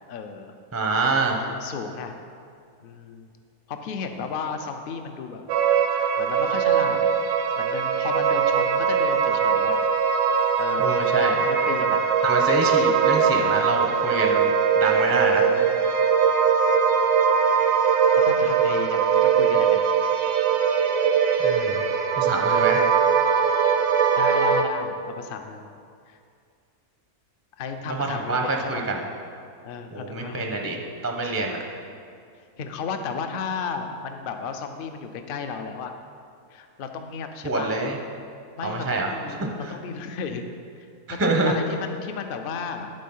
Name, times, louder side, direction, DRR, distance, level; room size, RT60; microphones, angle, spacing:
voice 1, 0.1-0.5 1.5-2.2 2.8-3.3 3.7-5.4 5.9-7.1 7.6-9.8 10.6-12.0 14.9-15.7 16.5-16.8 18.2-19.9 24.2-25.7 26.1-26.2 27.6-28.9 29.6-30.5 31.2-31.4 32.6-35.9 36.5-37.7 38.6-40.4 40.8-42.9, left 5 dB, 75° left, 6 dB, 0.5 m, -34 dB
voice 2, 0.7-1.4 10.8-11.4 12.2-15.5 21.4-21.8 22.2-22.9 27.9-29.0 29.9-31.6 37.4-38.0 38.6-39.1 39.4-39.5 41.2-41.6, right 3 dB, 25° right, 1 dB, 0.3 m, -26 dB
sound 1, 5.5-24.6, right 6 dB, 85° right, 1.2 m, -21 dB
11.0 x 4.3 x 5.4 m, 2.3 s
omnidirectional pair, 1.6 m